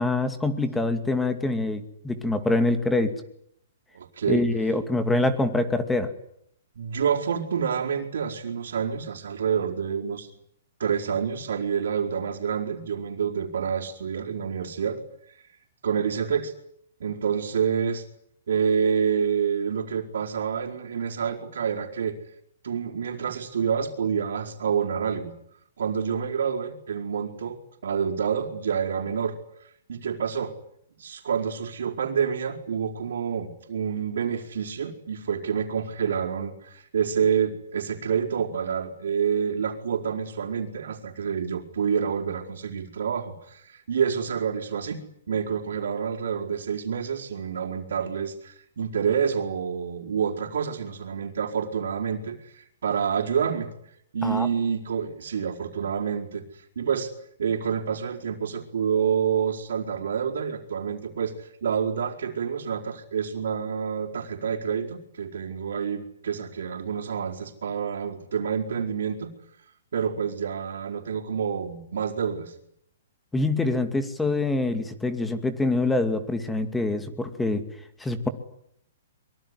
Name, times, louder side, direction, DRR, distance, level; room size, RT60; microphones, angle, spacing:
voice 1, 0.0-3.1 4.3-6.1 54.2-54.5 73.3-77.6 78.0-78.3, left 2 dB, 5° left, 9 dB, 2.4 m, -25 dB
voice 2, 3.9-4.4 6.7-10.3 10.8-15.0 15.8-16.5 17.0-18.0 18.5-22.2 22.6-25.3 25.8-29.4 29.9-30.5 31.0-53.7 54.1-57.1 57.4-69.3 69.9-72.5, right 7 dB, 80° right, -5 dB, 4.7 m, -28 dB
24.5 x 23.5 x 10.0 m, 0.70 s
hypercardioid pair, 160°, 0 cm